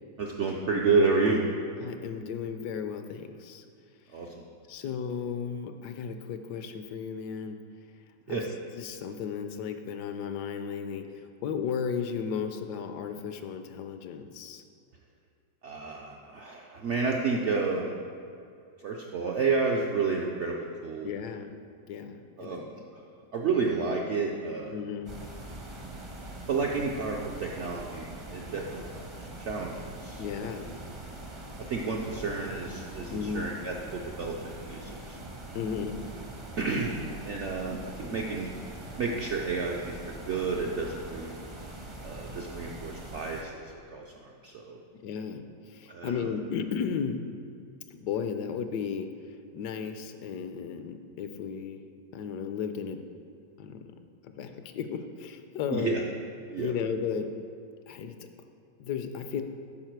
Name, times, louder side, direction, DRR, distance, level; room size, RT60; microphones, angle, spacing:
voice 1, 0.2-1.4 4.1-4.4 8.3-8.4 15.6-17.9 18.8-21.1 22.4-22.7 22.9-23.0 23.3-24.7 26.5-29.0 29.4-29.7 30.0-30.6 31.7-35.2 36.6-38.5 39.0-40.0 40.2-41.4 42.0-43.6 43.9-44.8 45.9-46.3 55.7-56.0 56.5-56.7, right 4 dB, 70° right, 0 dB, 0.7 m, -30 dB
voice 2, 1.8-3.6 4.7-7.6 8.3-8.5 8.7-11.1 11.4-14.6 21.0-21.5 21.9-22.7 24.7-25.1 30.2-30.7 33.1-33.5 35.5-35.9 45.0-47.2 47.9-49.1 49.5-51.8 52.1-53.0 53.6-53.8 54.2-56.0 56.6-57.3 57.9-58.2 58.8-59.4, left 7 dB, 75° left, 8 dB, 1.2 m, -34 dB
sound 1, 25.1-43.4, right 1 dB, 30° right, 0.5 m, -43 dB
11.5 x 4.7 x 4.6 m, 2.4 s
omnidirectional pair, 1.9 m